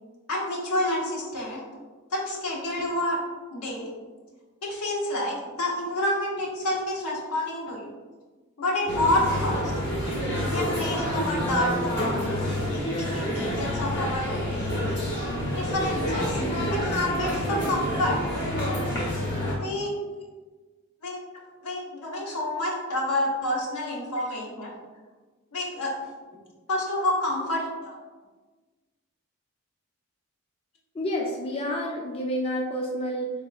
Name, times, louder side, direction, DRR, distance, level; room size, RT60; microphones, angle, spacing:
voice 1, 0.3-1.6 2.1-3.2 3.5-3.9 4.6-7.9 8.6-9.7 10.5-12.2 12.7-14.9 15.5-16.4 16.7-18.2 19.6-19.9 21.0-21.2 21.6-24.7 25.5-25.9 26.7-28.0, left 1 dB, 85° left, -3 dB, 0.9 m, -28 dB
sound 1, 8.9-19.5, equal, 50° left, 1.1 m, -28 dB
voice 2, 30.9-33.3, equal, 25° left, 0 dB, 0.3 m, -30 dB
3.6 x 3.5 x 2.3 m, 1.3 s
head